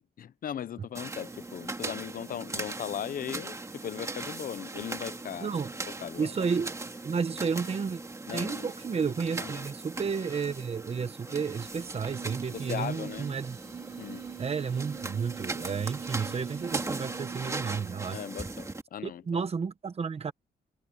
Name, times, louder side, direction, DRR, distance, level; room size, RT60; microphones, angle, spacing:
voice 1, 0.2-5.5 6.0-6.3 8.3-8.7 9.4-9.7 12.5-13.3 14.0-14.3 18.1-19.5, left 9 dB, 55° left, 0.8 m, -38 dB
sound 1, 0.9-18.8, right 3 dB, 20° right, 2.2 m, -39 dB
voice 2, 5.4-5.7 6.2-6.7 7.0-8.0 8.3-13.6 14.4-18.2 19.0-20.3, right 5 dB, 35° right, 1.3 m, -32 dB
sound 2, 11.6-18.1, right 8 dB, 60° right, 2.8 m, -44 dB
wide cardioid pair, 155°, 17 cm